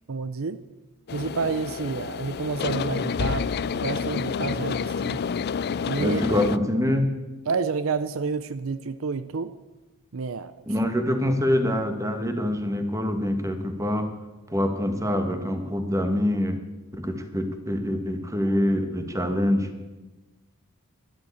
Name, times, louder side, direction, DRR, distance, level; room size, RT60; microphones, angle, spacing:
voice 1, 0.1-0.6 1.1-5.2 5.9-6.2 7.5-9.5 10.1-10.5, right 4 dB, 65° right, 13 dB, 0.6 m, -29 dB
sound 1, 1.1-6.6, left 6 dB, 50° left, 0.4 m, -29 dB
voice 2, 6.0-7.1 10.6-14.1 14.5-16.6 16.9-19.7, left 1 dB, 15° right, 6 dB, 1.6 m, -25 dB
13.0 x 12.0 x 8.5 m, 1.1 s
head